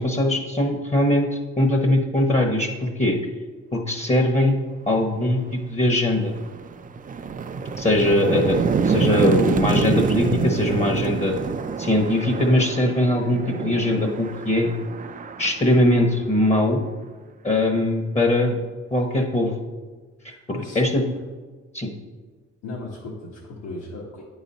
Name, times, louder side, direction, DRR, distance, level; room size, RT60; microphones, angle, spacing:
voice 1, 0.0-3.2 3.7-6.3 7.8-8.6 8.9-11.4 11.8-14.7 15.4-16.8 17.4-18.6 18.9-19.5 20.7-21.0 21.7-21.9, left 1 dB, 20° left, 3 dB, 0.9 m, -21 dB
sound 1, 5.3-5.4 5.9-16.6, right 5 dB, 30° right, 0.4 m, -27 dB
voice 2, 20.2-21.2 22.6-24.2, left 2 dB, 70° left, -5 dB, 1.5 m, -36 dB
9.1 x 4.0 x 4.2 m, 1.4 s
cardioid pair, 90°, 30 cm